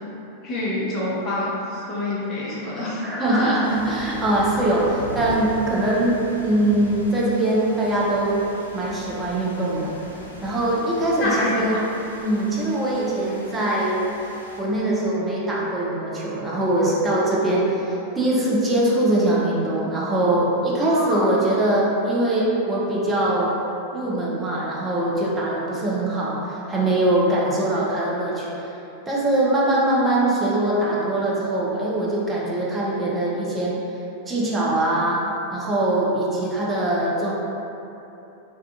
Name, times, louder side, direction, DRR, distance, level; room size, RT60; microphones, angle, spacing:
voice 1, 0.4-3.6 11.2-11.8 20.9-21.3, left 1 dB, 30° left, -8 dB, 0.5 m, -27 dB
voice 2, 3.0-9.9 10.4-11.8 12.2-14.0 14.6-23.5 23.9-28.5 29.1-33.8 34.3-35.2 35.5-37.3, right 1 dB, 15° right, -6 dB, 0.5 m, -22 dB
sound 1, 3.6-14.6, equal, 85° left, 0.3 m, -39 dB
2.4 x 2.2 x 2.6 m, 2.9 s
figure-of-eight pair, 90°, 0 cm